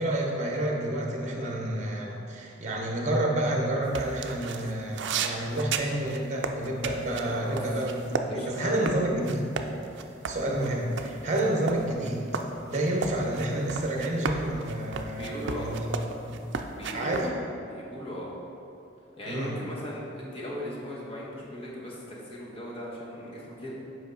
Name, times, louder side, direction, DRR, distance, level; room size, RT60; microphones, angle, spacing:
voice 1, 0.0-9.5 10.3-12.3 12.7-15.9 16.2-16.4 16.9-17.3 19.2-19.6, right 1 dB, 40° right, 0 dB, 1.0 m, -29 dB
sound 1, 3.9-8.2 8.5-17.3, right 5 dB, 65° right, 0.4 m, -34 dB
voice 2, 7.3-7.6 8.3-8.9 15.2-15.7 16.8-17.3 17.7-18.3 19.2-23.7, equal, 30° left, -5 dB, 1.3 m, -38 dB
7.9 x 4.8 x 3.9 m, 2.8 s
head